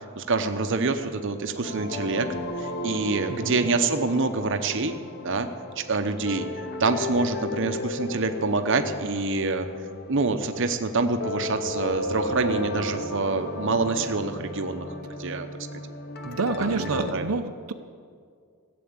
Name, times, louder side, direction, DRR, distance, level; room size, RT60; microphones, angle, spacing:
voice 1, 0.2-2.3 2.6-5.0 5.2-5.5 5.8-6.5 6.8-9.7 10.1-14.9 15.2-15.5 16.6-17.3, right 3 dB, 60° right, 7 dB, 0.8 m, -26 dB
sound 1, 1.6-17.1, left 1 dB, 45° left, 0.8 m, -34 dB
voice 2, 3.3-3.7 16.2-17.7, right 3 dB, 85° right, 6 dB, 0.8 m, -28 dB
15.5 x 7.8 x 8.7 m, 2.2 s
head